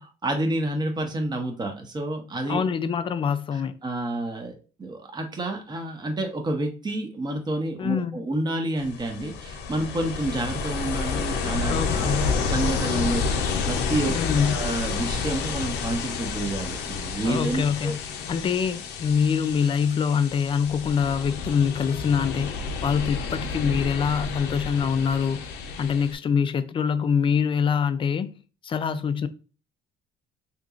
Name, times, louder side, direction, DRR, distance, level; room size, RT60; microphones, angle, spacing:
voice 1, 0.2-2.6 3.8-17.9, right 1 dB, 25° right, 0.9 m, -29 dB
voice 2, 2.5-3.8 7.8-8.3 11.7-12.4 14.1-14.7 17.2-18.0 18.3-25.5 25.8-28.3 28.6-29.3, left 6 dB, 30° left, 0.4 m, -25 dB
Ocean, 8.8-26.1, left 5 dB, 85° left, 0.6 m, -30 dB
3.7 x 2.9 x 2.4 m
cardioid pair, 110°, 17 cm